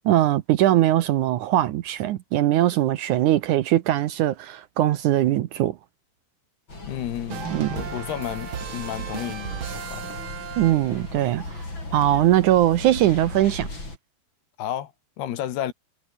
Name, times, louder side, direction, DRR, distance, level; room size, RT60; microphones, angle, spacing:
voice 1, 0.0-5.8 7.5-7.7 10.6-11.6 11.9-13.7, right 13 dB, 90° right, 1.7 m, -21 dB
sound 1, 6.7-14.0, left 2 dB, 25° left, 8.4 m, -37 dB
voice 2, 6.8-10.2 14.6-14.9 15.2-15.7, left 11 dB, 70° left, 3.7 m, -32 dB
sound 2, 7.3-11.2, right 8 dB, 50° right, 1.5 m, -35 dB
omnidirectional pair, 4.9 m